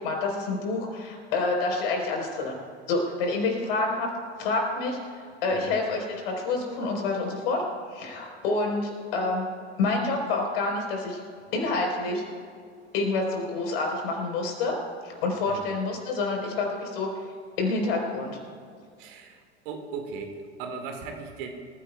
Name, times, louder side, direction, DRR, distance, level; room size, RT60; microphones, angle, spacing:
voice 1, 0.0-2.6 2.9-4.1 4.4-5.0 5.4-7.6 7.9-9.4 9.8-11.2 11.5-12.2 12.9-14.8 15.0-17.1 17.6-18.4, left 3 dB, 55° left, 1 dB, 4.3 m, -28 dB
voice 2, 19.0-21.5, right 5 dB, 50° right, 4 dB, 2.1 m, -38 dB
26.0 x 15.5 x 2.3 m, 2.1 s
figure-of-eight pair, 80°, 34 cm